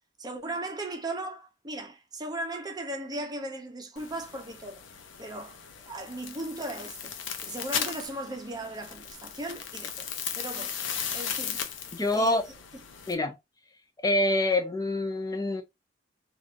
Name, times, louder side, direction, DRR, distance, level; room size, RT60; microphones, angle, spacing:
voice 1, 0.2-4.8 5.2-7.1 7.4-10.1 10.4-10.8 11.1-11.6 12.1-12.4, right 1 dB, 20° right, 0.7 m, -37 dB
sound 1, 4.0-13.1, left 7 dB, 70° left, 0.6 m, -37 dB
voice 2, 11.9-12.4 13.1-13.4 14.0-15.6, left 1 dB, 20° left, 0.6 m, -26 dB
3.2 x 2.5 x 2.5 m
head